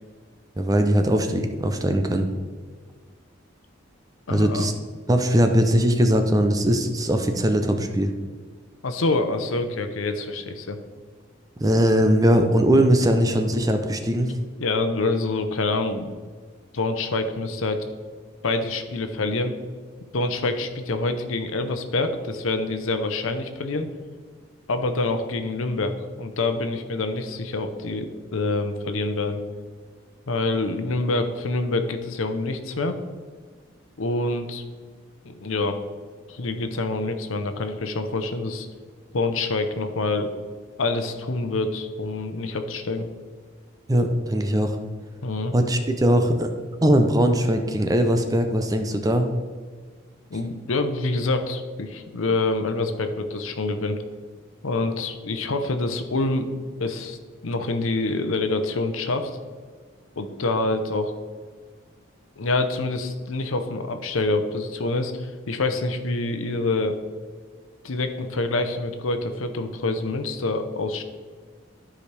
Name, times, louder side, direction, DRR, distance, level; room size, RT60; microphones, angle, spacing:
voice 1, 0.6-2.2 4.3-4.7 5.1-8.1 11.6-14.3 43.9-44.8 45.5-46.5 46.8-49.3, equal, 20° right, 6 dB, 0.5 m, -20 dB
voice 2, 4.3-4.7 8.8-10.8 14.6-16.1 16.7-17.8 18.4-19.5 20.1-23.9 24.7-29.4 30.3-33.0 34.0-34.6 35.2-35.8 36.3-38.7 39.1-40.3 40.8-43.1 45.2-45.5 50.3-54.0 54.6-56.5 56.8-57.2 57.4-59.3 60.2-61.1 62.4-67.0 67.8-71.0, left 2 dB, 85° left, 7 dB, 0.8 m, -26 dB
12.0 x 5.0 x 3.3 m, 1.5 s
head